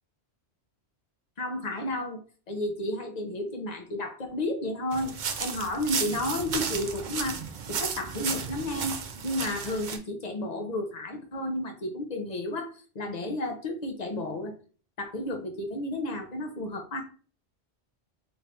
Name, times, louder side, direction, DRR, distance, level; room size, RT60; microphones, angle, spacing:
voice 1, 1.4-2.2 2.5-7.4 7.7-14.5 15.0-17.0, left 1 dB, 45° left, 4 dB, 0.9 m, -32 dB
sound 1, 4.9-10.0, right 6 dB, 55° right, 0.6 m, -33 dB
4.3 x 2.7 x 3.4 m, 0.39 s
omnidirectional pair, 1.1 m